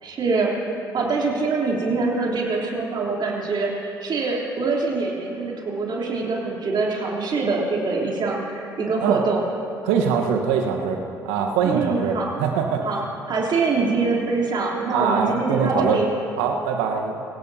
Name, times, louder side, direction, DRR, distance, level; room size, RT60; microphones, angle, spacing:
voice 1, 0.0-9.4 11.6-12.3 12.8-13.0 13.3-16.1, right 3 dB, 50° right, -3 dB, 3.6 m, -24 dB
voice 2, 9.8-12.8 14.9-16.0 16.4-17.2, right 6 dB, 75° right, 3 dB, 1.4 m, -23 dB
23.0 x 17.5 x 2.9 m, 2.8 s
hypercardioid pair, 50°, 10 cm